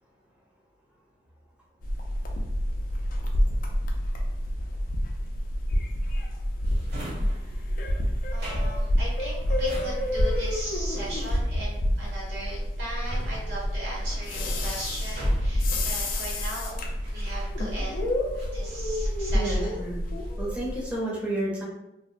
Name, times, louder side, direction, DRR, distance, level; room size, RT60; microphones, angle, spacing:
sound 1, 1.8-20.9, equal, 50° left, 0.4 m, -28 dB
Drawer open or close, 6.6-17.9 18.3-19.6 20.0-20.5, right 1 dB, 60° right, 0.9 m, -44 dB
voice 1, 8.3-18.1 18.5-19.7, right 1 dB, 90° right, -6 dB, 1.3 m, -38 dB
voice 2, 19.3-20.0 20.4-21.6, right 1 dB, 5° right, -6 dB, 0.6 m, -31 dB
2.7 x 2.1 x 2.5 m, 0.89 s
head